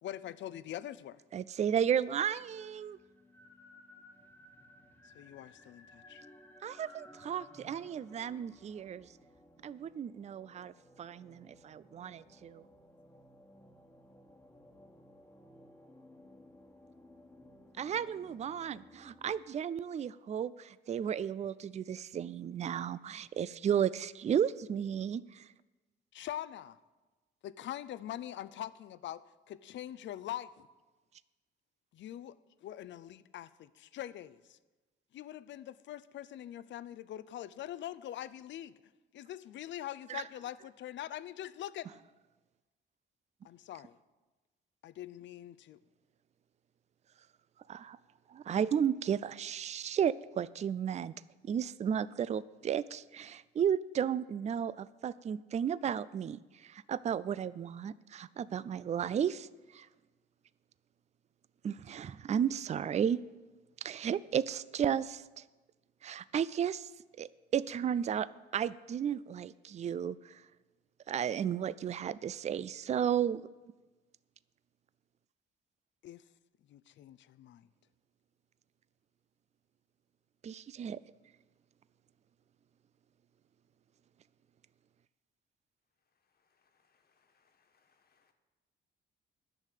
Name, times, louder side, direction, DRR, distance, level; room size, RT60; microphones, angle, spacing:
voice 1, 0.0-1.2 5.1-6.2 26.1-26.8 27.4-30.7 31.9-34.6 35.1-38.7 39.1-41.9 43.4-44.0 44.8-45.8 76.0-76.2 76.7-77.7, left 12 dB, 65° left, 16 dB, 0.5 m, -43 dB
voice 2, 1.3-3.0 6.6-9.1 9.6-10.7 11.0-12.6 17.8-25.4 40.1-40.2 47.7-48.0 48.3-51.1 51.4-59.5 59.7-59.9 61.6-63.2 63.8-65.4 66.0-66.9 67.2-70.4 71.1-73.5 80.4-81.0, right 8 dB, 35° right, 18 dB, 0.4 m, -33 dB
sound 1, 2.3-19.4, left 1 dB, 10° left, 1.4 m, -58 dB
voice 3, 86.2-88.3, left 5 dB, 50° left, 6 dB, 1.6 m, -74 dB
10.5 x 6.5 x 9.1 m, 1.2 s
cardioid pair, 90°, 20 cm